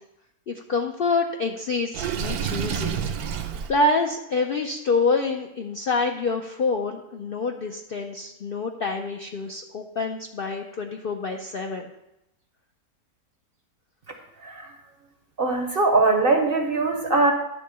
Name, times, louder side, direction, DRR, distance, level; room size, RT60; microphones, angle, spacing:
voice 1, 0.5-3.0 3.4-11.9, left 3 dB, 65° left, 3 dB, 0.5 m, -27 dB
Water / Sink (filling or washing), 1.9-3.7, right 8 dB, 80° right, 1.1 m, -28 dB
voice 2, 15.4-17.3, right 3 dB, 50° right, 4 dB, 0.8 m, -21 dB
10.5 x 3.7 x 6.7 m, 0.90 s
omnidirectional pair, 1.6 m